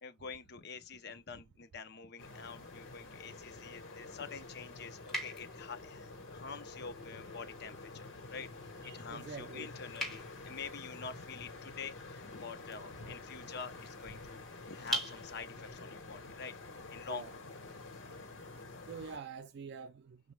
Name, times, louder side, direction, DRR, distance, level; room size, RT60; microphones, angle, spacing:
voice 1, 0.0-16.5 16.9-17.4, left 5 dB, 55° left, 0.6 m, -47 dB
sound 1, 2.2-19.2, left 3 dB, 85° left, 1.0 m, -49 dB
sound 2, 2.2-15.7, right 1 dB, ahead, 2.1 m, -47 dB
voice 2, 8.8-9.7 17.1-17.3 18.9-20.3, right 5 dB, 60° right, 0.3 m, -46 dB
5.3 x 2.1 x 3.1 m
head